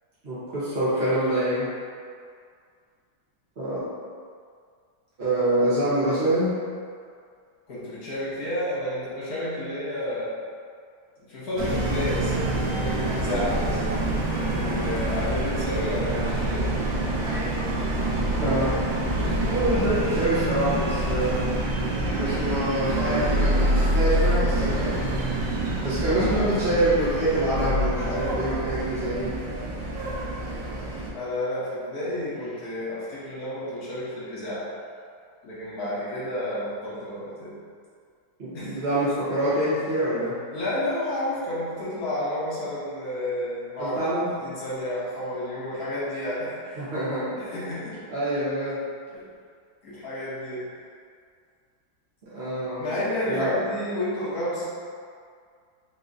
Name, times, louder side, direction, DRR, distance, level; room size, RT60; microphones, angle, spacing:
voice 1, 0.2-1.7 3.6-3.8 5.2-6.5 18.4-18.8 19.4-21.5 22.2-25.1 25.8-29.4 38.4-40.4 43.8-44.3 46.8-47.4 48.1-48.8 52.3-52.9 53.3-53.6, right 1 dB, 40° right, -13 dB, 1.1 m, -25 dB
voice 2, 7.7-10.4 11.2-13.9 14.4-16.6 17.1-17.3 31.1-34.7 35.4-37.6 38.5-38.8 40.5-44.0 44.3-46.9 47.3-48.0 49.1-49.3 49.8-50.6 52.8-54.6, left 1 dB, 60° left, -10 dB, 1.4 m, -31 dB
sound 1, 11.6-31.1, right 1 dB, 85° right, 1.4 m, -26 dB
3.8 x 2.9 x 2.5 m, 2.2 s
omnidirectional pair, 2.0 m